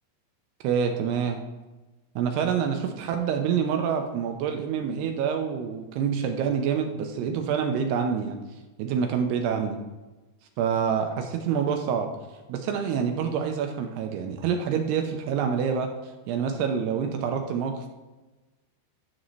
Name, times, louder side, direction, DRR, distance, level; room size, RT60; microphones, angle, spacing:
voice 1, 0.6-1.4 2.2-8.4 8.8-9.8 10.6-12.1 12.5-15.9 16.3-17.9, right 7 dB, 80° right, 4 dB, 2.4 m, -27 dB
11.0 x 6.4 x 3.1 m, 1.2 s
omnidirectional pair, 5.3 m